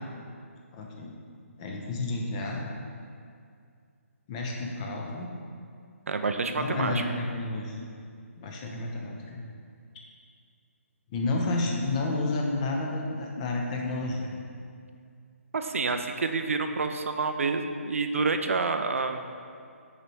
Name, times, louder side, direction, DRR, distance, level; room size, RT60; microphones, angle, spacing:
voice 1, 0.7-1.1 1.6-2.6 4.3-5.3 6.5-7.9 8.4-9.4 11.1-14.3, left 2 dB, 25° left, -1 dB, 0.7 m, -31 dB
voice 2, 6.1-7.0 15.5-19.3, right 4 dB, 65° right, 7 dB, 0.4 m, -28 dB
6.4 x 4.9 x 3.1 m, 2.3 s
figure-of-eight pair, 145°, 8 cm